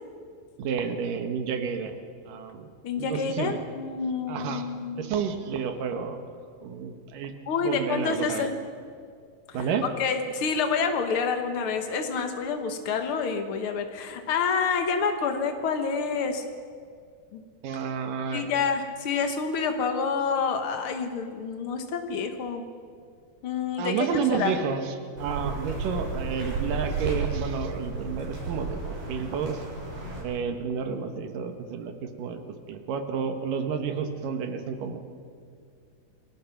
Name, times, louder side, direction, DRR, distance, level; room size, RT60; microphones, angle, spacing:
voice 1, 0.6-2.0 2.3-2.7 2.9-3.6 4.3-4.7 5.0-6.2 6.6-7.3 7.6-8.5 9.5-9.8 17.6-18.6 23.8-28.8 29.1-29.6 30.2-35.0, right 6 dB, 65° right, 7 dB, 2.9 m, -30 dB
voice 2, 2.8-5.0 7.5-8.5 10.0-16.4 17.3-17.4 18.3-22.6 23.4-24.5, left 5 dB, 85° left, 6 dB, 1.2 m, -28 dB
sound 1, 25.2-30.2, right 3 dB, 80° right, 9.1 m, -33 dB
28.5 x 19.5 x 6.0 m, 2.2 s
omnidirectional pair, 4.5 m